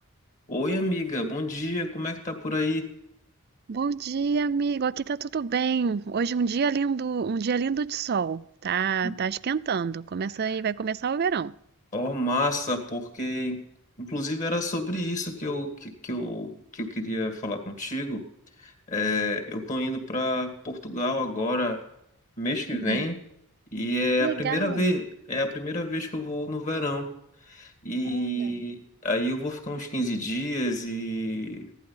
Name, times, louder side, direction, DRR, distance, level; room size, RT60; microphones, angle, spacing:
voice 1, 0.5-2.9 9.0-9.1 11.9-13.6 14.0-18.2 18.6-21.8 22.4-23.2 23.7-27.1 27.5-31.7, left 1 dB, 35° left, 1.9 m, -29 dB
voice 2, 3.7-11.5 22.7-23.1 24.2-25.0 28.0-28.4, right 5 dB, 45° right, 0.4 m, -27 dB
15.5 x 11.5 x 5.6 m
head